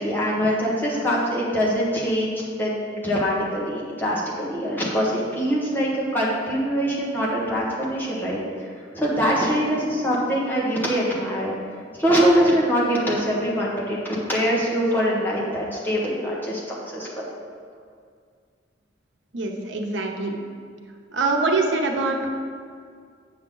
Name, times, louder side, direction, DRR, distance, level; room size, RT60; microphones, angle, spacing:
voice 1, 0.0-8.7 8.9-11.5 12.0-16.6 16.9-17.2, equal, 10° left, -5 dB, 1.4 m, -23 dB
voice 2, 19.3-20.4 21.1-22.3, right 3 dB, 90° right, 2 dB, 0.9 m, -24 dB
8.3 x 5.9 x 3.9 m, 2.1 s
head